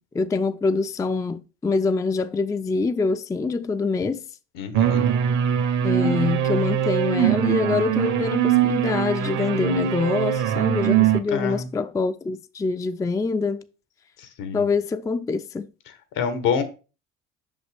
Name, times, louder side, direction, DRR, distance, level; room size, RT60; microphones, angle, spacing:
voice 1, 0.1-4.2 5.8-13.6 14.5-15.7, left 4 dB, 10° left, 0.3 m, -25 dB
voice 2, 4.5-5.1 11.3-11.7 14.2-14.6 16.1-16.6, left 6 dB, 75° left, 1.2 m, -27 dB
sound 1, 4.7-11.2, right 9 dB, 60° right, 0.9 m, -22 dB
6.0 x 5.4 x 3.4 m
hypercardioid pair, 65°, 33 cm